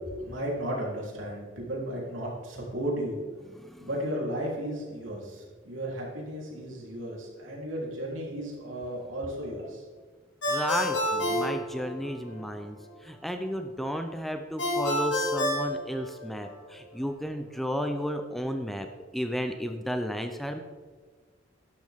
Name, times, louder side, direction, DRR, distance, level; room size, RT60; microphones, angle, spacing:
voice 1, 0.2-3.2 3.8-9.8, equal, 80° right, -3 dB, 3.6 m, -34 dB
Ringtone, 10.4-12.4 14.6-16.5, left 1 dB, 65° left, 3.5 m, -28 dB
voice 2, 10.5-18.9 19.1-20.6, equal, ahead, 6 dB, 0.5 m, -33 dB
12.0 x 11.5 x 3.6 m, 1.5 s
head